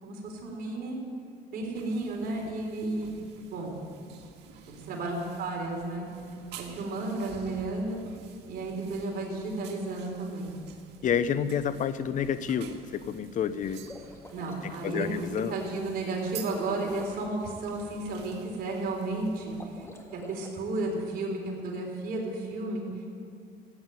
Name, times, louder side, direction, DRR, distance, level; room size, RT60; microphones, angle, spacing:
voice 1, 0.0-1.0 1.5-3.1 3.5-3.8 4.7-6.1 6.6-8.0 8.5-10.5 14.3-19.5 20.1-22.8, right 2 dB, 65° right, -1 dB, 3.8 m, -33 dB
sound 1, 1.7-19.9, right 8 dB, 85° right, 1.9 m, -50 dB
voice 2, 11.0-13.9 14.6-15.6, left 8 dB, 50° left, 14 dB, 0.7 m, -29 dB
sound 2, 13.7-14.6 16.5-17.4 19.5-20.6, left 1 dB, 15° left, 1.8 m, -47 dB
15.5 x 9.5 x 9.0 m, 2.2 s
cardioid pair, 110°, 17 cm